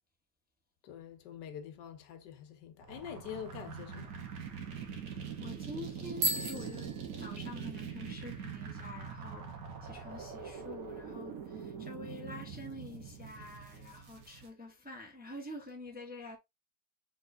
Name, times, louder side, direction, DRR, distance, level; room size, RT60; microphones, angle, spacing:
voice 1, 0.8-4.1, left 8 dB, 80° left, 1.3 m, -45 dB
sound 1, 2.8-14.5, right 7 dB, 60° right, 1.4 m, -43 dB
voice 2, 5.4-9.5 9.8-16.4, left 2 dB, 5° right, 0.8 m, -47 dB
Bicycle bell, 6.1-7.9, right 2 dB, 75° right, 1.9 m, -36 dB
4.4 x 4.0 x 2.6 m
omnidirectional pair, 1.9 m